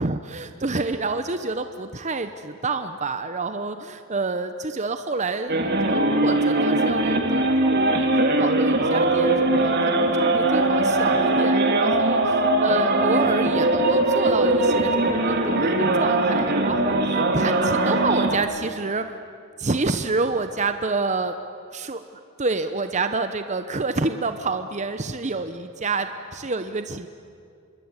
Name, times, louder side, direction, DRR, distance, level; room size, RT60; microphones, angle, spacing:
voice 1, 0.0-5.6 5.8-8.1 8.4-19.2 19.6-21.4 21.7-22.0 22.4-27.1, right 3 dB, 35° right, 9 dB, 0.9 m, -28 dB
sound 1, 5.5-18.4, right 2 dB, 50° right, 2.7 m, -21 dB
26.5 x 23.0 x 9.8 m, 2.3 s
head